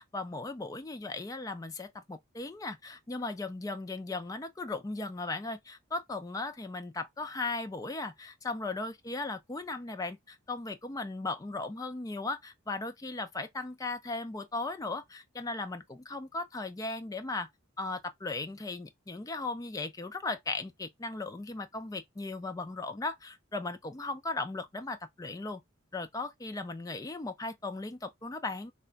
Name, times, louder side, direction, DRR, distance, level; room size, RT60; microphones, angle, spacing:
voice 1, 0.0-17.5 17.8-25.6 25.9-28.7, left 3 dB, 15° left, 0.3 m, -37 dB
3.3 x 2.2 x 3.8 m
head